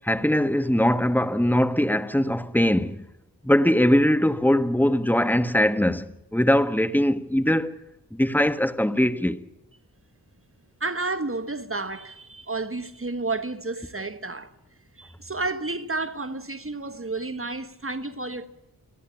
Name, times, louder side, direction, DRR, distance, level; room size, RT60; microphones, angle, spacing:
voice 1, 0.0-3.0 3.4-6.1 6.3-7.8 8.1-9.4, left 1 dB, 5° left, 1.4 m, -21 dB
voice 2, 10.8-14.5 15.0-18.5, right 3 dB, 35° right, 1.5 m, -31 dB
28.5 x 11.0 x 8.7 m
cardioid pair, 50°, 38 cm